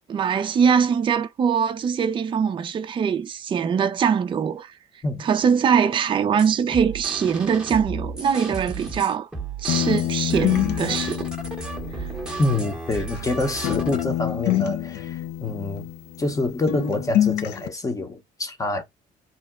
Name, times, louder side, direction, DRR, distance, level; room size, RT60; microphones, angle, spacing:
voice 1, 0.1-4.7 5.2-9.3 9.6-11.3 12.0-12.1, right 7 dB, 30° right, 0.4 m, -22 dB
sound 1, 6.4-14.0, right 4 dB, 5° right, 0.8 m, -34 dB
sound 2, 9.7-13.3 13.6-16.4 16.7-17.7, left 13 dB, 80° left, 0.4 m, -27 dB
voice 2, 12.4-15.9 16.2-18.8, left 2 dB, 20° left, 0.8 m, -26 dB
2.8 x 2.1 x 3.5 m
cardioid pair, 110°, 17 cm